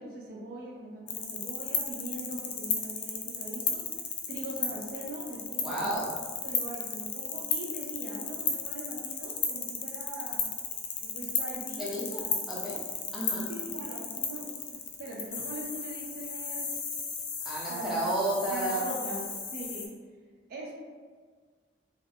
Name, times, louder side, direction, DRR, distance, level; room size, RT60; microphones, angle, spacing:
voice 1, 0.0-3.9 4.3-6.0 6.4-10.4 11.0-12.1 13.3-16.7 17.7-18.0 18.5-19.3 19.5-19.9 20.5-20.7, right 1 dB, 55° right, -2 dB, 0.4 m, -41 dB
sound 1, 1.1-19.9, left 6 dB, 50° left, 0.4 m, -34 dB
voice 2, 5.6-6.1 11.8-12.8 13.1-13.5 17.4-18.9, right 1 dB, ahead, -7 dB, 0.6 m, -32 dB
2.3 x 2.2 x 3.3 m, 1.5 s
head